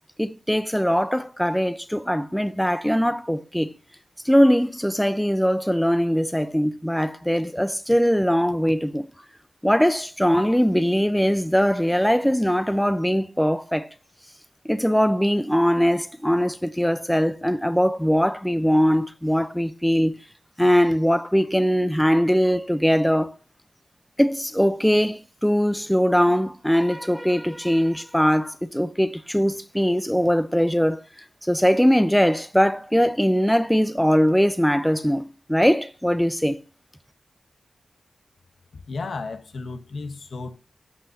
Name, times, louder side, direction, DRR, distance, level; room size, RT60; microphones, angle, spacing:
voice 1, 0.2-3.7 4.2-9.1 9.6-13.9 14.6-20.2 20.6-23.3 24.2-31.0 31.4-36.6, equal, 5° left, 0.8 m, -21 dB
voice 2, 38.9-40.6, left 3 dB, 75° left, 1.1 m, -33 dB
15.0 x 5.5 x 2.7 m
cardioid pair, 40°, 0 cm